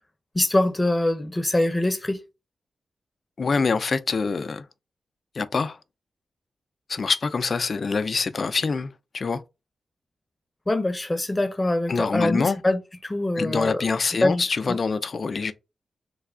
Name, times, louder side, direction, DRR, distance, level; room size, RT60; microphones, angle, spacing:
voice 1, 0.3-2.2 10.7-13.9 14.2-14.8, left 1 dB, 25° left, 0.7 m, -24 dB
voice 2, 3.4-4.6 5.4-5.8 6.9-9.4 11.9-12.6 13.4-15.5, left 4 dB, 55° left, 0.4 m, -25 dB
3.3 x 2.3 x 3.7 m
cardioid pair, 50°, 0 cm